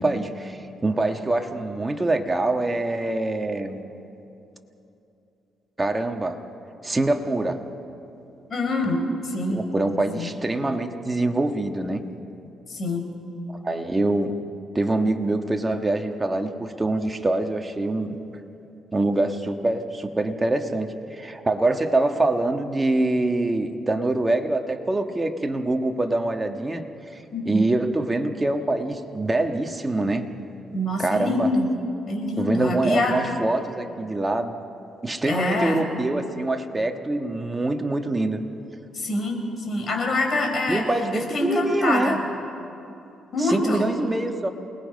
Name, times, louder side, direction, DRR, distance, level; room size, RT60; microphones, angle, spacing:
voice 1, 0.0-3.8 5.8-6.4 6.8-7.6 9.5-12.0 13.6-14.3 14.7-18.2 18.9-26.8 27.1-30.3 31.0-31.5 32.4-34.5 35.0-38.4 40.7-42.2 43.4-44.5, right 2 dB, 20° right, 4 dB, 1.4 m, -24 dB
voice 2, 8.5-9.6 10.2-10.3 12.7-13.1 27.3-27.6 30.7-31.7 32.1-33.1 35.2-35.9 38.9-39.4 39.7-40.8 41.1-42.2 43.3-43.9, left 2 dB, 45° left, 2 dB, 4.5 m, -25 dB
28.0 x 19.5 x 5.3 m, 2.8 s
cardioid pair, 100°, 0 cm